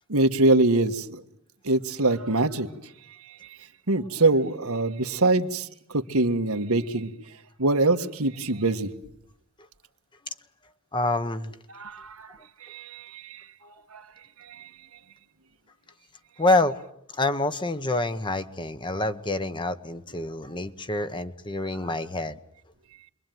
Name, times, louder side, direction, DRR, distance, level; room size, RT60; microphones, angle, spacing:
voice 1, 0.1-1.2 1.6-2.7 3.9-7.1 7.6-8.9 11.7-14.1 14.5-14.7, right 2 dB, 80° right, 7 dB, 1.7 m, -24 dB
voice 2, 10.9-11.5 16.4-16.8 17.1-22.4, left 2 dB, 20° left, 11 dB, 1.1 m, -27 dB
28.0 x 22.5 x 9.3 m, 0.75 s
head